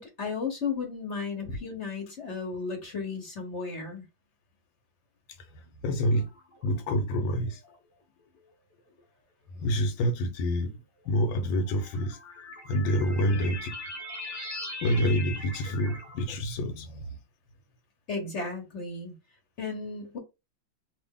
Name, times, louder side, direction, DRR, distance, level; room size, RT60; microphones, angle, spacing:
voice 1, 0.0-4.0 18.1-19.1 19.6-20.2, left 4 dB, 45° left, 1.1 m, -34 dB
voice 2, 5.5-6.3 6.6-7.6 9.5-10.8 11.0-12.2 12.7-13.8 14.8-17.0, equal, 75° left, 1.4 m, -27 dB
sound 1, 6.1-6.8 7.6-7.8 8.9-9.0 11.2-16.2, left 2 dB, 15° left, 0.7 m, -41 dB
2.9 x 2.6 x 3.6 m
omnidirectional pair, 2.1 m